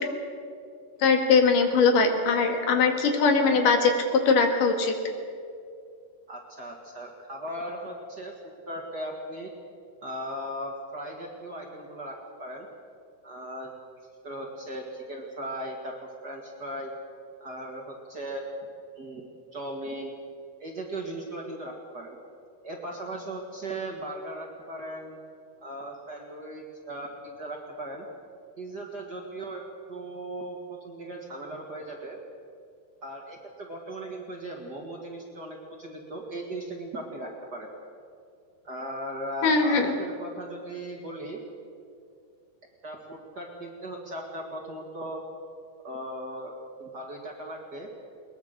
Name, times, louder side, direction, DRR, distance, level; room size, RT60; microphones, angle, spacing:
voice 1, 1.0-4.9 39.4-39.9, left 4 dB, 70° left, 4 dB, 3.5 m, -21 dB
voice 2, 6.3-8.3 8.7-9.5 10.0-12.7 13.2-13.7 14.2-16.9 17.4-18.4 19.0-20.1 20.6-22.2 22.6-25.2 25.6-28.1 28.6-29.6 29.9-32.2 33.0-37.7 38.6-41.4 42.8-45.2 45.8-47.9, right 1 dB, 35° right, 0 dB, 2.0 m, -38 dB
21.5 x 20.5 x 6.7 m, 2.4 s
omnidirectional pair, 3.9 m